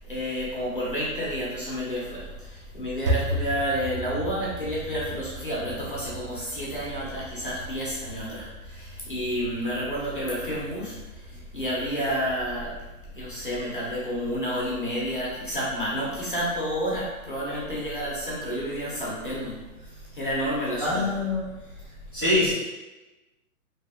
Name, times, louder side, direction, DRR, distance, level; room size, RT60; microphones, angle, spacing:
voice 1, 0.1-11.0 11.5-12.7 13.1-19.6 20.1-21.1 22.3-22.4, equal, 40° left, -6 dB, 0.4 m, -30 dB
sound 1, 2.1-13.5, right 1 dB, 85° right, 0.8 m, -36 dB
voice 2, 11.7-12.0 20.8-21.5 22.1-22.5, left 2 dB, 15° right, -15 dB, 0.6 m, -25 dB
2.6 x 2.4 x 2.4 m, 1.1 s
hypercardioid pair, 175°, 44 cm